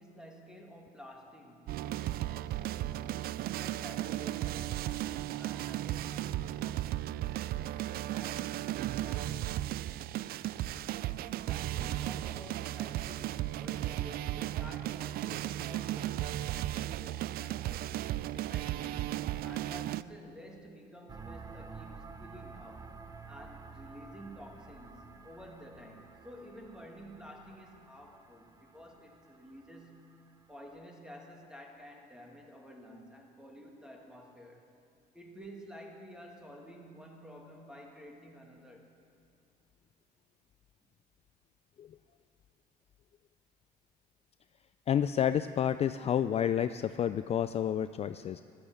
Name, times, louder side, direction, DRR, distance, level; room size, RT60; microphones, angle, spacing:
voice 1, 0.0-7.0 7.3-9.9 11.4-18.0 18.3-22.9 23.3-30.2 30.5-34.7 35.1-38.9, equal, 5° right, 1 dB, 2.3 m, -51 dB
sound 1, 1.7-20.0, right 14 dB, 65° right, 0.4 m, -35 dB
sound 2, 21.1-30.6, right 4 dB, 20° right, 0.7 m, -51 dB
voice 2, 44.9-48.4, left 9 dB, 40° left, 11 dB, 0.4 m, -30 dB
13.5 x 12.0 x 7.8 m, 2.4 s
cardioid pair, 110°, 17 cm